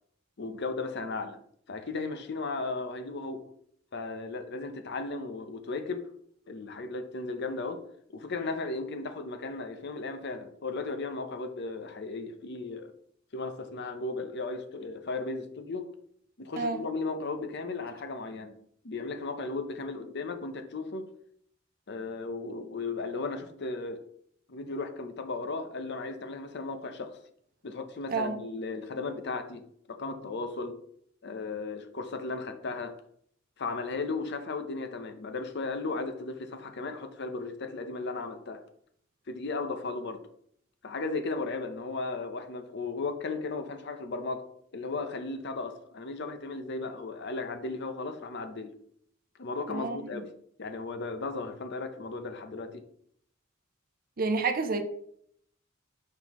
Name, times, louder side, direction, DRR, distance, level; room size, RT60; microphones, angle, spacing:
voice 1, 0.4-1.4 1.7-3.5 3.9-6.1 6.5-7.8 8.1-12.9 13.3-15.9 16.4-18.6 18.8-21.1 21.9-24.0 24.5-27.2 27.6-29.6 29.9-30.8 31.2-33.0 33.6-38.6 39.3-40.2 40.8-44.5 44.7-48.7 49.4-50.3 50.6-52.8, left 3 dB, 60° left, 0.8 m, -35 dB
voice 2, 49.7-50.2 54.2-54.8, right 4 dB, 45° right, 0.7 m, -29 dB
6.0 x 5.7 x 3.0 m
head